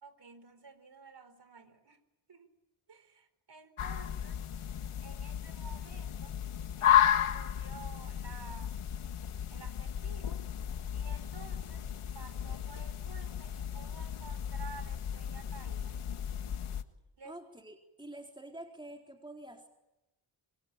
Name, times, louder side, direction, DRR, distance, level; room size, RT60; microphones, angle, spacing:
voice 1, 0.0-2.0 2.3-2.5 2.9-4.4 5.0-6.4 6.8-8.8 9.5-10.4 10.9-11.9 12.1-16.1 17.2-17.4, right 5 dB, 55° right, 11 dB, 4.7 m, -52 dB
sound 1, 3.8-16.8, left 9 dB, 85° left, 1.8 m, -33 dB
voice 2, 17.2-19.7, right 1 dB, 10° right, 2 dB, 4.1 m, -47 dB
27.0 x 24.5 x 9.0 m, 0.94 s
cardioid pair, 75°, 49 cm